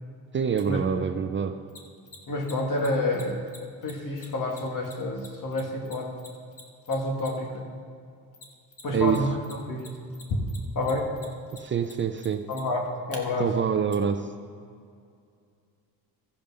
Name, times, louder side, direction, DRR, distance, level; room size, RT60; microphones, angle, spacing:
voice 1, 0.3-1.6 8.9-9.2 11.6-12.5 13.4-14.3, right 7 dB, 30° right, 8 dB, 0.5 m, -26 dB
Mechanisms, 0.6-0.7 1.7-7.6 8.3-9.2 9.4-13.2 13.9-14.0, left 3 dB, 35° left, 1.5 m, -46 dB
voice 2, 2.3-3.4 3.8-6.1 6.9-7.7 8.8-9.3 9.6-9.9 10.8-11.1 12.5-13.6, left 1 dB, 55° left, 1 dB, 2.0 m, -28 dB
15.5 x 5.3 x 5.5 m, 2.3 s
cardioid pair, 115°, 39 cm